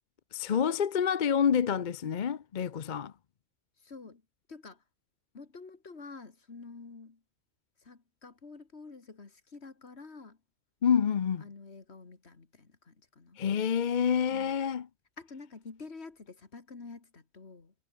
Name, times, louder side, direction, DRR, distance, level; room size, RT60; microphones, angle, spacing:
voice 1, 0.3-3.1 10.8-11.4 13.4-14.9, left 7 dB, 50° left, 0.8 m, -27 dB
voice 2, 3.8-4.2 4.5-4.8 5.3-7.2 7.8-10.4 11.4-13.4 14.3-14.6 15.2-17.7, left 4 dB, 70° left, 2.5 m, -48 dB
omnidirectional pair, 1.1 m